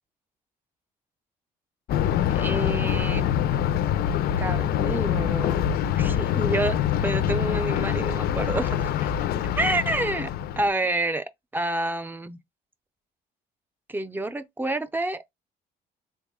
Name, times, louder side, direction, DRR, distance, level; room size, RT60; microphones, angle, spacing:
Thunder, 1.9-10.7, left 10 dB, 65° left, 0.5 m, -25 dB
voice 1, 2.3-3.3 4.4-5.7 6.0-6.8 7.0-9.1 9.6-12.4 13.9-15.2, right 2 dB, 10° right, 0.5 m, -28 dB
3.5 x 2.2 x 3.6 m
cardioid pair, 110°, 17 cm